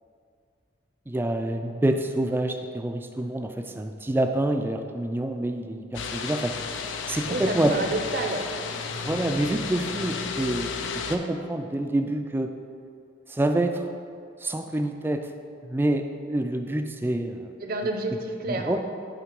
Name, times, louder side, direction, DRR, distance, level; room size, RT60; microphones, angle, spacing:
voice 1, 1.1-6.5 7.1-7.7 9.0-10.7 11.1-12.5 13.3-13.9 14.4-15.3 15.6-17.5 18.5-18.8, right 1 dB, 10° right, 6 dB, 0.3 m, -27 dB
Outboard Motors, 5.9-11.2, left 5 dB, 90° left, 0.5 m, -33 dB
voice 2, 7.3-8.5 17.6-18.8, right 2 dB, 50° right, 4 dB, 0.7 m, -29 dB
7.6 x 3.7 x 5.2 m, 2.3 s
head